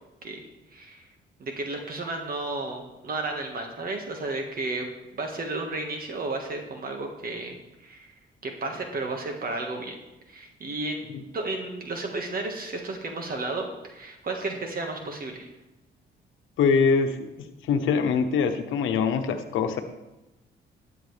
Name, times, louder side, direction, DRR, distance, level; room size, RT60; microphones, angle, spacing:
voice 1, 0.7-1.0 1.4-4.9 5.1-7.6 7.8-8.1 8.4-10.0 10.3-11.0 11.3-15.5, right 2 dB, 50° right, 3 dB, 1.7 m, -33 dB
voice 2, 16.6-17.3 17.6-19.8, left 5 dB, 80° left, 6 dB, 1.0 m, -23 dB
12.5 x 9.5 x 3.4 m, 1.0 s
cardioid pair, 90°, 20 cm